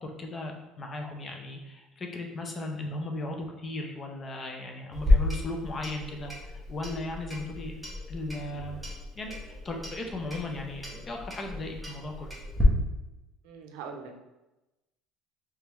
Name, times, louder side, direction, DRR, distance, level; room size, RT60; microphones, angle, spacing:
voice 1, 0.0-7.7 8.1-8.8 9.2-9.4 9.6-12.3, left 2 dB, 25° left, 2 dB, 0.5 m, -36 dB
Clock, 4.9-12.6, left 2 dB, 5° right, 0.8 m, -32 dB
voice 2, 13.4-14.2, right 5 dB, 85° right, 3 dB, 0.5 m, -42 dB
3.4 x 3.3 x 3.0 m, 0.99 s
cardioid pair, 165°, 0 cm